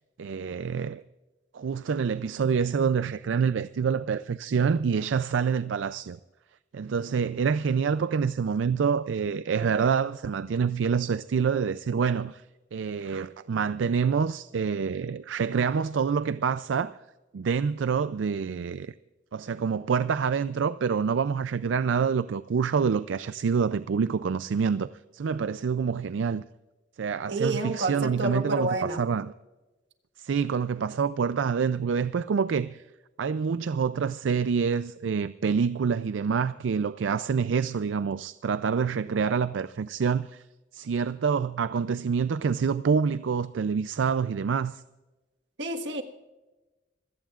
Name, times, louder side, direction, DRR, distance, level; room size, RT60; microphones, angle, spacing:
voice 1, 0.2-1.0 1.5-6.2 6.7-12.4 12.7-17.0 17.3-18.9 19.3-24.9 25.1-26.4 27.0-29.3 30.2-32.8 33.2-40.4 40.7-44.8, right 6 dB, 85° right, 0.4 m, -27 dB
voice 2, 27.3-29.0 45.6-46.0, right 2 dB, 70° right, 1.6 m, -29 dB
26.0 x 16.5 x 2.4 m
head